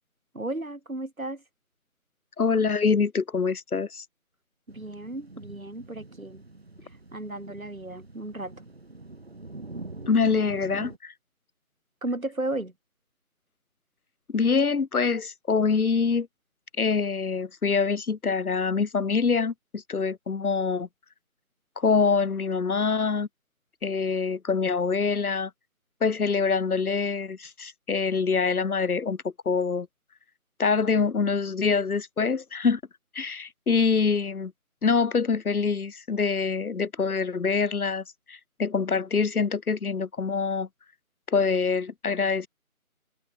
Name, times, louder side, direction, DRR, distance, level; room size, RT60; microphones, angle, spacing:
voice 1, 0.3-1.4 4.7-6.4 7.1-8.5 12.0-12.7, right 2 dB, 70° right, 5.0 m, -34 dB
voice 2, 2.4-4.0 10.1-11.1 14.3-16.3 16.8-20.9 21.8-23.3 23.8-25.5 26.0-29.9 30.6-32.8 33.1-34.5 34.8-40.7 41.3-42.5, left 5 dB, 85° left, 0.8 m, -25 dB
sound 1, 4.7-11.0, right 2 dB, 45° right, 3.5 m, -44 dB
figure-of-eight pair, 165°, 43 cm